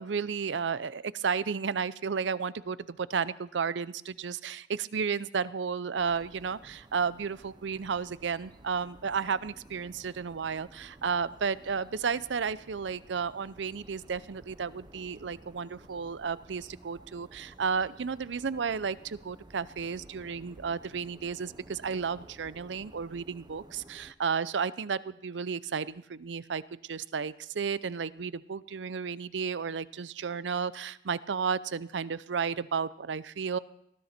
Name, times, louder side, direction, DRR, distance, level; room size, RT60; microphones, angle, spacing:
voice 1, 0.0-33.6, right 6 dB, 80° right, 18 dB, 0.6 m, -33 dB
sound 1, 5.9-24.1, right 1 dB, 25° right, 0.7 m, -54 dB
19.5 x 13.5 x 4.4 m, 0.74 s
head